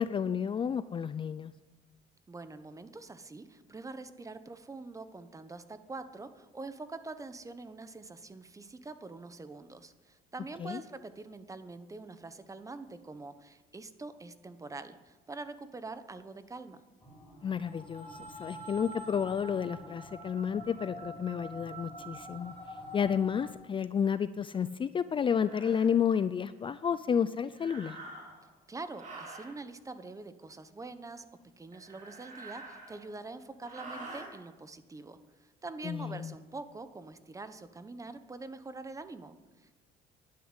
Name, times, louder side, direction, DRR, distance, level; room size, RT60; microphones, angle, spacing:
voice 1, 0.0-1.5 10.6-10.8 17.4-22.5 22.9-28.0 35.8-36.3, left 7 dB, 30° left, 15 dB, 0.4 m, -31 dB
voice 2, 2.3-16.8 28.7-31.2 31.6-39.7, right 3 dB, 20° right, 11 dB, 1.1 m, -45 dB
sound 1, 17.0-23.5, right 1 dB, 15° left, 5.1 m, -46 dB
sound 2, 24.5-24.6 25.4-25.9 27.5-28.5 28.9-29.5 31.7-33.2 33.6-34.3, right 2 dB, 45° right, 4.4 m, -47 dB
11.5 x 9.7 x 9.9 m, 1.2 s
cardioid pair, 110°, 17 cm